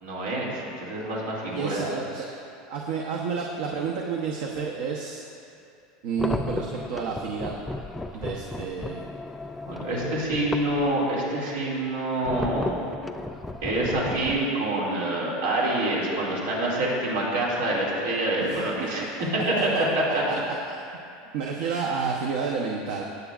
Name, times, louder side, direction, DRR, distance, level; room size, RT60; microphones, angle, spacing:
voice 1, 0.0-1.8 9.7-13.0 13.6-19.0 19.8-20.2, right 1 dB, 90° right, -4 dB, 2.4 m, -26 dB
voice 2, 1.5-5.2 6.0-7.7 8.1-9.0 18.4-19.1 19.5-19.6 20.3-20.8 21.3-23.0, right 5 dB, 75° right, 0 dB, 0.8 m, -30 dB
sound 1, 6.2-10.9 12.2-14.5, left 2 dB, 10° left, 0.3 m, -34 dB
17.0 x 8.1 x 2.5 m, 2.6 s
supercardioid pair, 145°, 0 cm